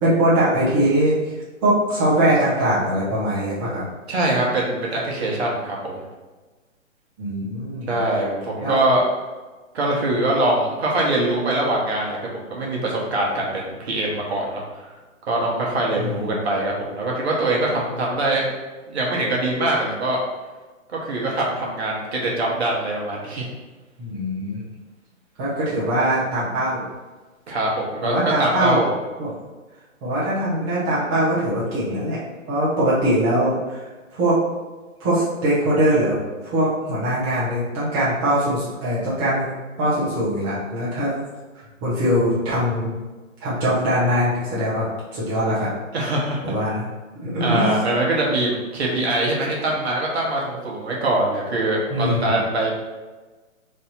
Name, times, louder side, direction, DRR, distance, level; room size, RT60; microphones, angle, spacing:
voice 1, 0.0-3.9 7.2-8.0 8.6-8.8 16.0-16.3 24.0-24.6 25.4-26.9 28.0-28.8 29.2-29.3 30.0-34.4 35.0-39.5 39.8-41.1 41.5-42.9 43.4-44.9 45.1-45.7 46.4-46.9 47.1-47.8 51.9-52.4, right 1 dB, 20° right, -10 dB, 0.9 m, -22 dB
voice 2, 4.1-6.0 7.9-9.0 9.7-14.8 15.3-18.5 18.9-20.2 20.9-23.5 27.5-28.9 45.9-46.5 47.4-52.7, right 1 dB, 50° right, -3 dB, 1.1 m, -23 dB
3.3 x 2.7 x 4.2 m, 1.2 s
hypercardioid pair, 145°, 41 cm